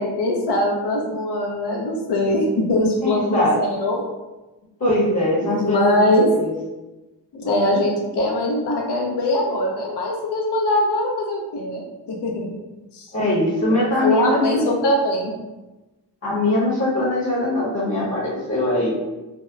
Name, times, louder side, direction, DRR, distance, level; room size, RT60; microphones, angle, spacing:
voice 1, 0.0-4.0 5.4-6.3 7.3-12.5 12.9-13.1 13.7-15.3, left 1 dB, 70° left, 0 dB, 0.6 m, -22 dB
voice 2, 3.0-3.6 4.8-6.0 6.3-6.5 13.1-14.7 16.2-18.9, left 1 dB, 35° left, -7 dB, 0.9 m, -21 dB
2.7 x 2.1 x 2.3 m, 1.1 s
cardioid pair, 45°, 43 cm